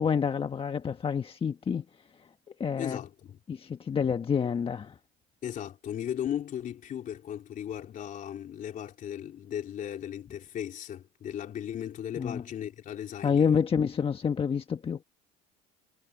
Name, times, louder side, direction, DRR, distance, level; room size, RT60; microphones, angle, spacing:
voice 1, 0.0-1.8 2.6-3.0 3.5-5.0 12.2-12.4 13.2-15.0, left 7 dB, 30° left, 1.4 m, -28 dB
voice 2, 2.8-3.4 5.4-13.5, left 10 dB, 50° left, 3.5 m, -36 dB
supercardioid pair, 90°, 18 cm